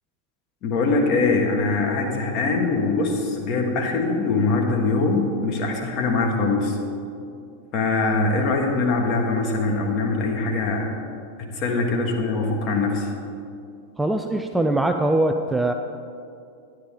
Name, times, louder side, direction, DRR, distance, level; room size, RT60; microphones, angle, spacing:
voice 1, 0.6-6.8 7.7-10.9 11.4-13.1, left 3 dB, 40° left, 1 dB, 1.5 m, -22 dB
voice 2, 14.0-15.7, right 2 dB, 5° right, 5 dB, 0.4 m, -22 dB
11.0 x 10.5 x 3.7 m, 2.5 s
figure-of-eight pair, 90°, 0 cm